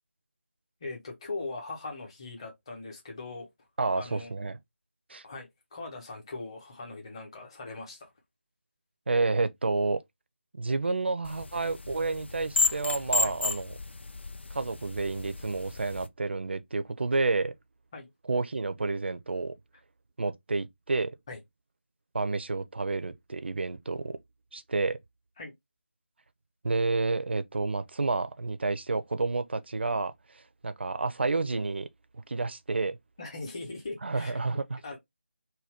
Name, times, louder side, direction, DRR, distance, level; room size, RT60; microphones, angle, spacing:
voice 1, 0.8-3.5 4.0-4.3 5.2-8.1 13.2-13.4 17.9-18.1 21.3-21.4 25.4-25.5 33.2-34.4 34.8-35.0, left 3 dB, 25° left, 0.9 m, -40 dB
voice 2, 3.8-4.6 5.1-5.2 9.1-10.0 10.6-13.8 14.5-17.5 18.3-19.5 20.2-21.2 22.1-24.2 24.5-25.0 26.6-31.9 32.3-33.0 34.0-35.0, right 3 dB, 60° right, 0.4 m, -30 dB
sound 1, 11.2-16.1, left 3 dB, 65° left, 0.4 m, -32 dB
2.6 x 2.2 x 3.4 m
figure-of-eight pair, 160°, 7 cm